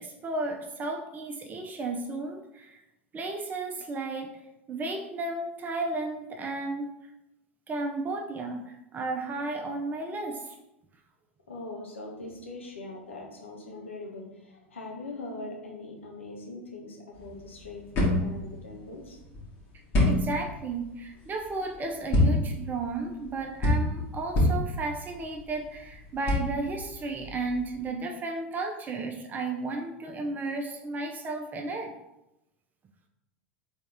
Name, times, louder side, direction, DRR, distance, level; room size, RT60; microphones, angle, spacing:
voice 1, 0.0-2.8 3.1-4.3 4.7-6.9 7.7-10.6 20.0-31.9, right 3 dB, 25° right, 2 dB, 0.5 m, -33 dB
voice 2, 11.5-19.2, left 2 dB, 75° left, -1 dB, 1.1 m, -41 dB
sound 1, 17.1-27.9, left 1 dB, 40° left, 1.7 m, -28 dB
4.1 x 3.6 x 3.5 m, 0.91 s
figure-of-eight pair, 80°, 7 cm